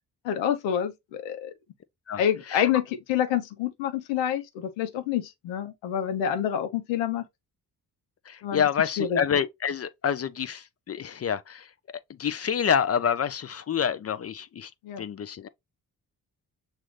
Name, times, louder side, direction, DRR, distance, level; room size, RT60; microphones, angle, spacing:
voice 1, 0.2-1.5 2.2-7.3 8.4-8.6 9.0-9.2 14.8-15.0, left 9 dB, 85° left, 0.8 m, -27 dB
voice 2, 8.3-14.7 15.0-15.5, left 7 dB, 35° left, 0.5 m, -28 dB
6.2 x 2.6 x 3.1 m
supercardioid pair, 50°, 43 cm